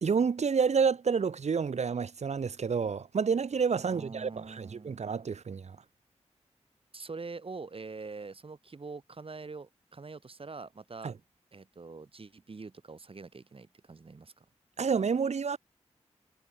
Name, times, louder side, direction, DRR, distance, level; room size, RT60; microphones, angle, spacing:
voice 1, 0.0-5.8 11.0-11.1 14.8-15.6, right 6 dB, 70° right, 1.2 m, -29 dB
voice 2, 3.8-5.0 6.9-11.1 11.5-14.4, right 4 dB, 50° right, 2.3 m, -44 dB
cardioid pair, 50°, 12 cm